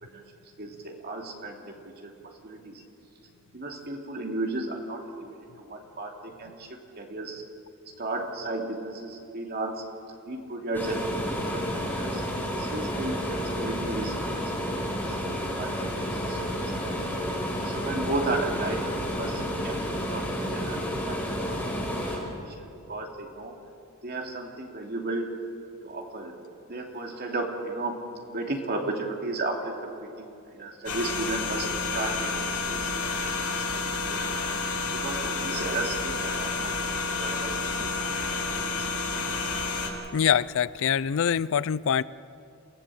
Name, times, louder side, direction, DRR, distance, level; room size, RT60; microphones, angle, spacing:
voice 1, 0.6-1.8 2.0-2.8 3.5-6.7 7.0-7.4 8.0-9.8 10.3-12.2 12.6-15.1 15.6-17.1 17.6-18.8 19.2-23.5 24.0-25.3 25.8-26.3 26.7-28.0 28.3-31.7 31.9-34.4 34.9-38.5 38.8-39.1, right 2 dB, 45° right, 1 dB, 2.9 m, -35 dB
sound 1, 10.7-22.2, equal, 10° left, 4.8 m, -31 dB
sound 2, 30.9-39.9, left 4 dB, 90° left, 4.6 m, -30 dB
voice 2, 40.1-42.0, left 8 dB, 65° left, 19 dB, 0.4 m, -24 dB
28.0 x 16.0 x 7.7 m, 2.6 s
head